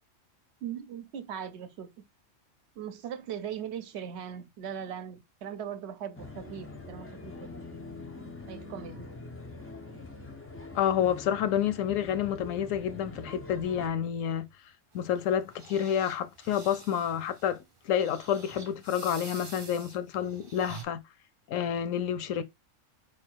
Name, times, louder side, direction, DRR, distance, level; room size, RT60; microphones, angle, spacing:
voice 1, 0.6-1.9 2.8-7.6 8.5-9.1, right 8 dB, 65° right, 0.8 m, -39 dB
sound 1, 6.1-13.9, left 3 dB, 20° left, 0.3 m, -44 dB
voice 2, 10.7-14.5 14.9-21.0 21.5-22.4, left 9 dB, 85° left, 1.0 m, -29 dB
sound 2, 14.9-20.8, right 4 dB, 35° right, 0.6 m, -48 dB
4.3 x 2.3 x 4.4 m
omnidirectional pair, 1.3 m